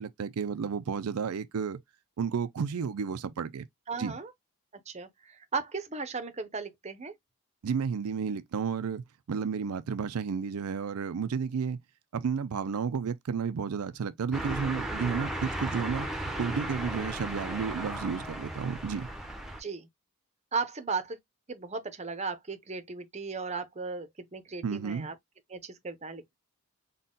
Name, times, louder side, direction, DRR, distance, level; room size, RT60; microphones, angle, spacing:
voice 1, 0.0-1.8 2.2-3.7 4.0-4.1 7.6-11.8 12.1-16.1 16.4-19.1 24.6-25.1, right 6 dB, 80° right, 0.4 m, -32 dB
voice 2, 3.9-4.3 4.9-7.1 19.6-19.9 20.5-21.2 21.5-25.1 25.5-26.3, right 4 dB, 30° right, 0.7 m, -36 dB
sound 1, 14.3-19.6, right 1 dB, ahead, 0.9 m, -35 dB
4.1 x 2.3 x 3.7 m
head